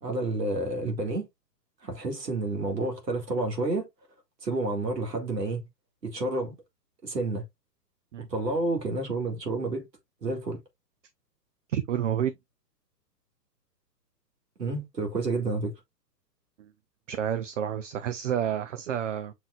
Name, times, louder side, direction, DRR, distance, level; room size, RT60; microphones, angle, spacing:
voice 1, 0.0-1.3 1.8-3.9 4.4-5.6 6.0-6.5 7.0-7.4 8.3-9.9 10.2-10.6 14.6-15.7, right 2 dB, 80° right, 2.0 m, -29 dB
voice 2, 11.7-12.3 16.6-16.7 17.1-19.3, right 9 dB, 50° right, 0.6 m, -29 dB
6.0 x 3.7 x 2.3 m
figure-of-eight pair, 120°, 49 cm